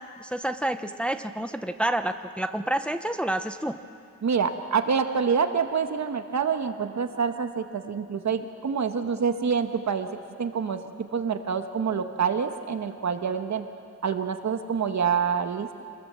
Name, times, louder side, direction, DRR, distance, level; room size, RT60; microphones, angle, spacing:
voice 1, 0.0-3.8, right 1 dB, 5° left, 8 dB, 0.6 m, -29 dB
voice 2, 4.2-10.1 10.4-10.8 11.1-13.6 14.0-15.8, right 6 dB, 70° right, 7 dB, 1.3 m, -26 dB
26.5 x 20.0 x 7.6 m, 2.4 s
wide cardioid pair, 155°, 29 cm